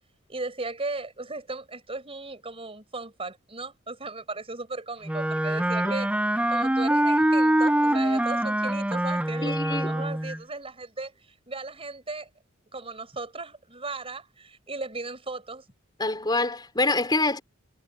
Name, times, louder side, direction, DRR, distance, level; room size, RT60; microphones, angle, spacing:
voice 1, 0.3-6.1 6.5-11.1 11.5-12.3 12.7-15.7, right 3 dB, 25° right, 5.4 m, -36 dB
Wind instrument woodwind instrument, 5.1-10.4, right 1 dB, 5° right, 0.5 m, -24 dB
voice 2, 9.4-9.9 16.0-17.4, left 2 dB, 20° left, 3.8 m, -26 dB
head